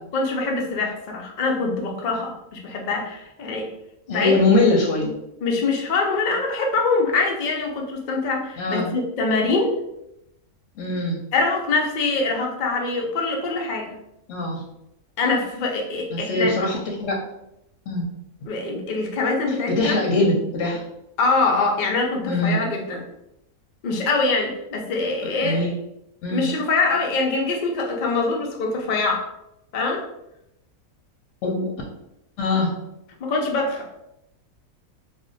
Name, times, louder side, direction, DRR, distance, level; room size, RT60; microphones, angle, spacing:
voice 1, 0.1-3.7 4.1-4.3 5.4-9.8 11.3-14.0 15.2-16.5 18.5-20.0 21.2-23.0 23.8-25.7 26.3-29.2 29.7-30.1 33.2-33.9, left 3 dB, 90° left, 1 dB, 0.4 m, -24 dB
voice 2, 4.1-5.1 8.6-8.9 10.8-11.2 14.3-14.6 16.1-17.2 17.9-18.0 19.7-20.8 22.3-22.6 25.4-25.7 26.2-26.5 31.4-31.7 32.4-32.7, left 2 dB, 70° left, -1 dB, 0.8 m, -22 dB
2.5 x 2.1 x 3.8 m, 0.84 s
omnidirectional pair, 1.5 m